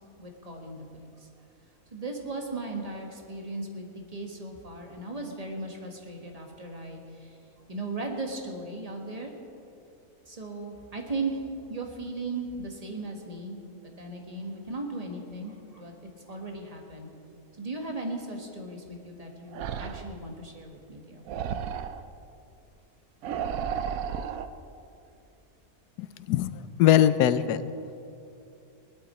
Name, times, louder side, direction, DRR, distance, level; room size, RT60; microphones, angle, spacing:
voice 1, 0.2-1.3 1.9-7.4 7.7-9.3 10.3-13.6 13.8-15.9 16.2-17.1 17.6-21.2, right 2 dB, 25° right, 2 dB, 1.5 m, -37 dB
sound 1, 19.5-20.1 21.3-22.0 23.2-24.5, right 8 dB, 70° right, 1.0 m, -33 dB
voice 2, 26.0-26.5 26.8-27.6, left 11 dB, 85° left, 14 dB, 1.2 m, -21 dB
18.5 x 12.0 x 4.3 m, 2.7 s
omnidirectional pair, 1.7 m